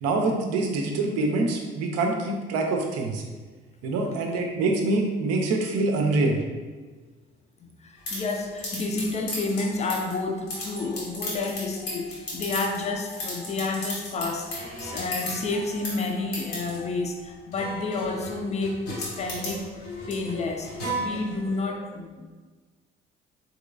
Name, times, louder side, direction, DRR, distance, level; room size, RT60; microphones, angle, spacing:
voice 1, 0.0-3.2 3.8-6.4, right 2 dB, 55° right, 2 dB, 0.6 m, -25 dB
voice 2, 7.6-22.3, left 3 dB, 20° left, 3 dB, 0.5 m, -30 dB
sound 1, 8.1-21.6, left 1 dB, 75° left, 0.9 m, -36 dB
3.7 x 3.0 x 2.3 m, 1.4 s
figure-of-eight pair, 50°, 31 cm